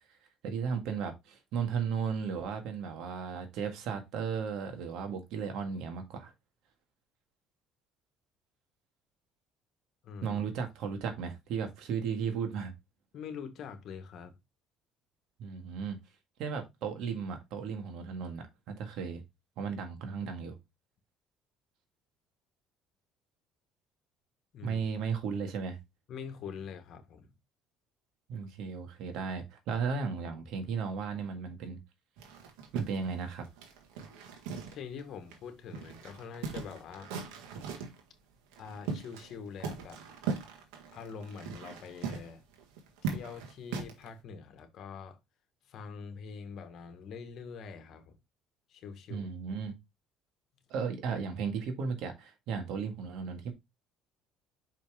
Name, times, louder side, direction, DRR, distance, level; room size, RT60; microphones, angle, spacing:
voice 1, 0.4-6.3 10.2-12.7 15.4-16.0 16.4-19.2 19.6-20.6 24.6-25.8 28.3-31.8 32.7-33.4 49.1-49.7 50.7-53.5, right 6 dB, 70° right, 1.8 m, -35 dB
voice 2, 10.0-10.4 13.1-14.3 24.5-24.8 26.1-27.3 34.7-37.1 38.6-40.0 40.9-42.4 43.0-45.2 45.7-48.2 48.7-49.3, left 6 dB, 60° left, 1.6 m, -44 dB
sound 1, 32.2-35.0 35.3-35.4 35.7-38.0 38.5-39.3 39.6-44.1, right 5 dB, 90° right, 1.7 m, -39 dB
5.7 x 5.2 x 3.6 m
supercardioid pair, 95°, 0 cm